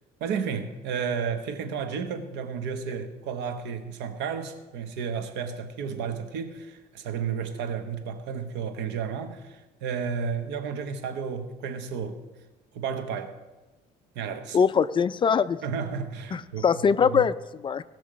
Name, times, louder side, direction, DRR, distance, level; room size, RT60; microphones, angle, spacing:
voice 1, 0.2-12.2 12.7-13.3 14.1-14.6 15.6-16.7 17.0-17.2, right 6 dB, 90° right, 1.2 m, -32 dB
voice 2, 14.5-15.6 16.3-17.8, left 6 dB, 30° left, 0.4 m, -23 dB
18.0 x 6.2 x 5.0 m
cardioid pair, 110°, 17 cm